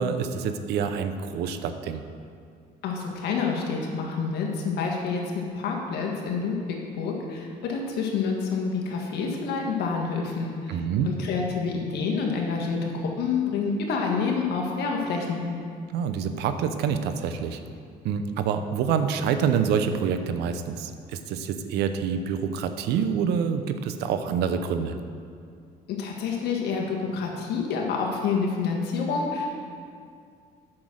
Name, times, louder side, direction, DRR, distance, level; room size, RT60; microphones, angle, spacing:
voice 1, 0.0-2.0 10.7-11.1 15.9-17.6 18.0-24.9, right 7 dB, 80° right, 9 dB, 0.7 m, -27 dB
voice 2, 2.8-15.4 25.9-29.5, left 5 dB, 75° left, 0 dB, 1.6 m, -28 dB
8.6 x 6.1 x 6.3 m, 2.3 s
cardioid pair, 110°, 17 cm